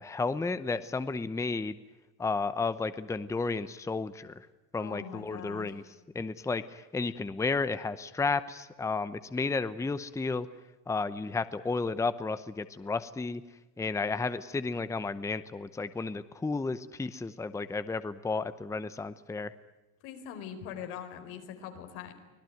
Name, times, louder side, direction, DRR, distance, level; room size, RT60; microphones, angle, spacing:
voice 1, 0.0-1.7 2.2-4.5 4.7-5.8 6.1-10.5 10.9-13.4 13.8-19.5, left 4 dB, 5° left, 13 dB, 0.8 m, -32 dB
voice 2, 4.8-5.7 20.0-22.1, left 8 dB, 90° left, 5 dB, 4.6 m, -42 dB
25.0 x 18.0 x 9.3 m, 1.1 s
cardioid pair, 135°, 42 cm